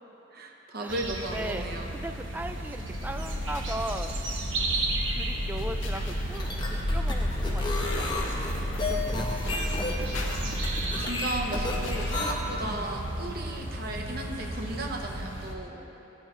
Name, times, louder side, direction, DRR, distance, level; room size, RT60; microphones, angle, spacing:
voice 1, 0.3-1.9 10.4-15.8, right 1 dB, 55° right, 1 dB, 1.0 m, -35 dB
sound 1, 0.9-15.5, right 2 dB, 75° right, 1.1 m, -34 dB
voice 2, 1.3-1.7 1.9-4.1 5.1-10.1 12.6-12.9, right 1 dB, 10° right, 7 dB, 0.3 m, -39 dB
sound 2, 2.9-12.8, left 1 dB, 75° left, 1.4 m, -33 dB
sound 3, 6.2-12.3, left 2 dB, 25° left, 0.9 m, -33 dB
16.5 x 9.1 x 3.2 m, 3.0 s
head